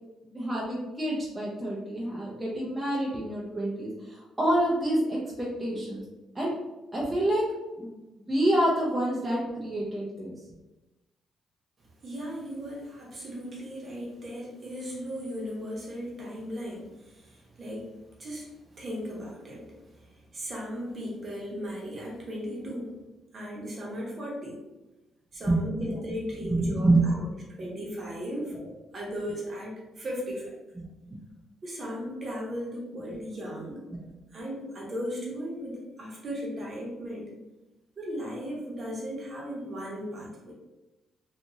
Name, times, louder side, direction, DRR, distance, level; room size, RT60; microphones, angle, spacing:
voice 1, 0.2-6.0 6.3-6.5 6.9-10.3 25.5-25.9 26.5-27.3 28.6-28.7 30.8-31.2 33.9-34.0, right 1 dB, 20° right, -5 dB, 0.6 m, -28 dB
voice 2, 12.0-23.0 23.3-24.6 25.3-27.2 27.6-28.6 28.9-30.6 31.6-33.9 34.3-37.3 38.0-40.5, equal, 40° right, -3 dB, 1.0 m, -37 dB
2.9 x 2.5 x 2.6 m, 1.1 s
cardioid pair, 90°, 0 cm